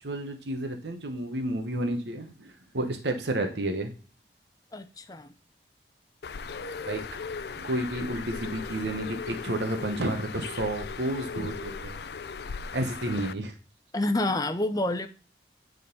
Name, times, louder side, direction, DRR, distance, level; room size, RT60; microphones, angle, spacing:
voice 1, 0.0-3.9 6.8-7.0 7.5-12.0 12.7-13.5, right 1 dB, 75° right, 1.2 m, -31 dB
voice 2, 4.7-5.3 13.9-15.1, left 1 dB, 20° left, 0.6 m, -28 dB
Bird, 6.2-13.3, left 5 dB, 65° left, 0.5 m, -38 dB
9.3 x 3.9 x 5.3 m
head